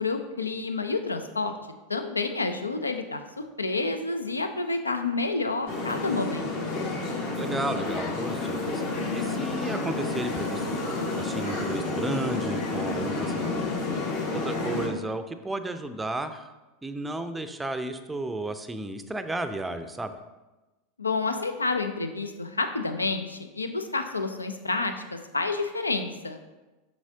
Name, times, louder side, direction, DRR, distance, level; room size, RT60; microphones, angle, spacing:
voice 1, 0.0-1.5 1.9-6.8 21.0-26.4, left 3 dB, 85° left, 8 dB, 0.5 m, -29 dB
sound 1, 5.7-14.9, left 3 dB, 55° left, 1.7 m, -30 dB
voice 2, 7.3-8.8 9.1-10.8 11.2-13.7 14.1-14.2 14.4-16.5 16.8-20.1, right 2 dB, 10° right, 9 dB, 0.5 m, -33 dB
7.1 x 6.2 x 2.8 m, 1.1 s
figure-of-eight pair, 85°, 0 cm